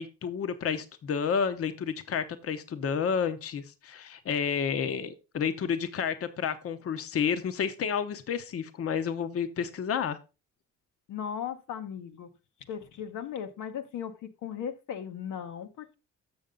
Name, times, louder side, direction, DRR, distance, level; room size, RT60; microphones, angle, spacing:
voice 1, 0.0-10.2, left 7 dB, 50° left, 0.8 m, -30 dB
voice 2, 11.1-12.3 12.7-16.0, left 8 dB, 80° left, 1.0 m, -37 dB
7.0 x 6.5 x 3.8 m
cardioid pair, 90°, 30 cm